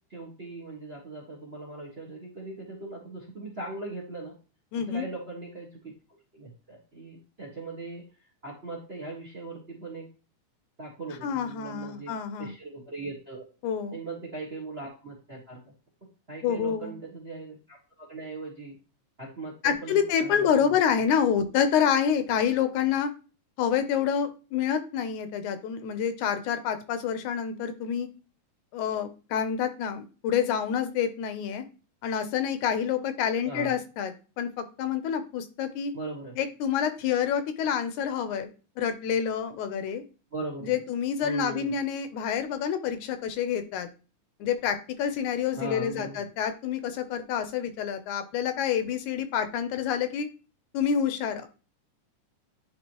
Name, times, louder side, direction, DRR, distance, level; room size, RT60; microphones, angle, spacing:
voice 1, 0.1-4.3 4.9-5.9 6.3-8.0 8.4-10.1 10.8-12.1 12.4-13.4 13.9-15.6 16.3-18.7 19.2-20.8 33.4-33.8 35.9-36.4 40.3-40.8 41.2-41.7 45.6-46.2, right 3 dB, 35° right, -1 dB, 1.0 m, -39 dB
voice 2, 4.7-5.1 11.2-12.5 13.6-14.0 16.4-16.9 19.6-23.1 23.6-28.1 28.7-31.6 32.0-35.9 36.4-38.5 38.8-40.0 40.6-43.9 44.4-50.3 50.7-51.5, left 8 dB, 80° left, 10 dB, 2.1 m, -28 dB
9.9 x 3.6 x 2.9 m, 0.34 s
omnidirectional pair, 3.4 m